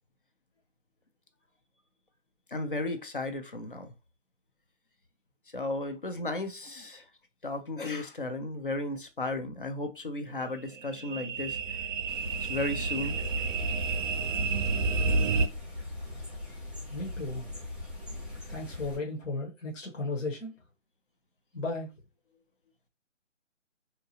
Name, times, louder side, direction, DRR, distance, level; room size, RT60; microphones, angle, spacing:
voice 1, 2.5-3.9 5.5-7.0 7.4-11.6 12.4-13.2, left 2 dB, 45° left, 0.5 m, -34 dB
sound 1, 10.4-15.5, right 4 dB, 80° right, 0.5 m, -30 dB
sound 2, 12.1-19.0, left 2 dB, 10° left, 0.8 m, -41 dB
voice 2, 16.9-17.4 18.5-20.6 21.5-21.9, left 2 dB, 70° left, 1.1 m, -35 dB
2.8 x 2.1 x 2.7 m
figure-of-eight pair, 165°, 38 cm